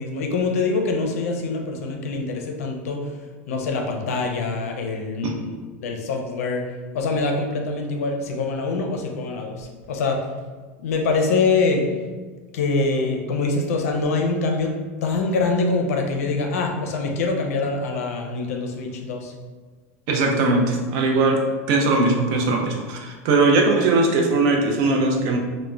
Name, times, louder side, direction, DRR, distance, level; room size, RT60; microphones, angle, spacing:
voice 1, 0.0-3.0 3.5-5.5 5.8-6.6 6.9-10.2 10.8-11.8 12.5-14.7 15.0-19.3, left 3 dB, 85° left, 2 dB, 0.5 m, -24 dB
voice 2, 20.1-25.4, right 3 dB, 55° right, 1 dB, 0.5 m, -20 dB
2.4 x 2.1 x 3.1 m, 1.4 s
supercardioid pair, 125°, 8 cm